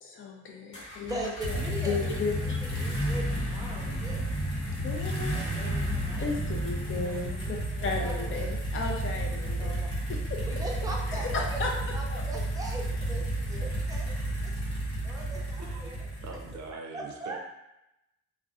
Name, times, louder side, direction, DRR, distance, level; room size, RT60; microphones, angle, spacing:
voice 1, 0.0-1.2 1.9-2.6 4.8-5.3 6.2-9.7 10.1-10.4 11.1-11.7 12.1-12.2, left 4 dB, 45° left, 0 dB, 0.5 m, -34 dB
sound 1, 0.7-16.7, right 1 dB, 85° left, 1.0 m, -32 dB
voice 2, 1.0-2.5 2.8-4.2 5.3-6.4 6.8-8.5 9.6-9.9 10.5-14.1 14.4-14.5 15.0-16.1 16.9-17.4, right 2 dB, 10° right, -2 dB, 0.5 m, -40 dB
voice 3, 16.2-17.4, right 3 dB, 65° right, 1 dB, 0.5 m, -42 dB
2.4 x 2.1 x 2.4 m, 0.89 s
cardioid pair, 90°, 30 cm